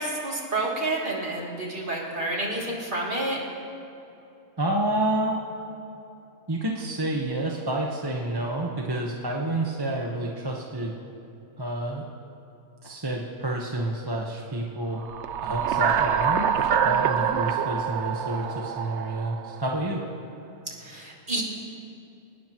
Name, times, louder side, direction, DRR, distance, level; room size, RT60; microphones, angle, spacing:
voice 1, 0.0-3.4 20.8-21.4, right 2 dB, 35° right, -4 dB, 3.0 m, -29 dB
voice 2, 4.6-5.4 6.5-10.9 11.6-12.0 12.8-15.0 15.4-20.0, right 1 dB, 20° right, -1 dB, 1.1 m, -29 dB
sound 1, 15.0-19.7, right 8 dB, 65° right, 0.8 m, -26 dB
24.0 x 19.5 x 3.1 m, 2.8 s
omnidirectional pair, 1.5 m